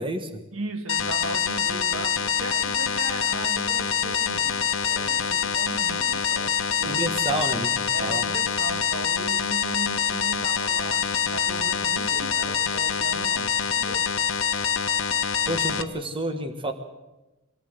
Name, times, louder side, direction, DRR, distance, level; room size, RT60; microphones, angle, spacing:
voice 1, 0.0-0.4 6.9-8.2 15.5-16.7, right 1 dB, 25° right, 1.4 m, -29 dB
voice 2, 0.5-7.4 7.9-14.1, right 2 dB, 70° right, 1.6 m, -37 dB
sound 1, 0.9-15.8, left 7 dB, 65° left, 1.2 m, -25 dB
24.5 x 18.0 x 7.9 m
head